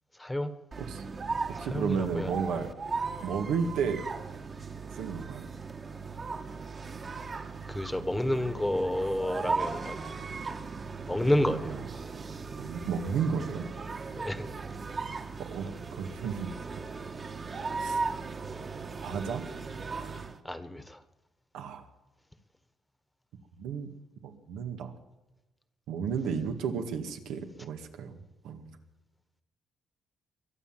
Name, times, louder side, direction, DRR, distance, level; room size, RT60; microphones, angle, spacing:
voice 1, 0.2-0.5 1.6-2.3 7.7-10.2 10.4-10.6 11.1-11.7 14.2-14.4 20.4-21.0, left 1 dB, 10° left, 12 dB, 1.4 m, -30 dB
sound 1, 0.7-20.4, right 4 dB, 40° right, 1.6 m, -37 dB
voice 2, 1.6-2.7 3.2-4.1 4.9-5.5 11.3-11.8 12.6-13.6 15.4-16.5 17.8-18.0 19.0-19.4 21.5-21.9 23.6-23.9 24.2-24.9 25.9-28.2 28.4-28.7, right 6 dB, 90° right, 5 dB, 1.9 m, -33 dB
23.0 x 8.0 x 7.5 m, 1.0 s
cardioid pair, 90°, 0 cm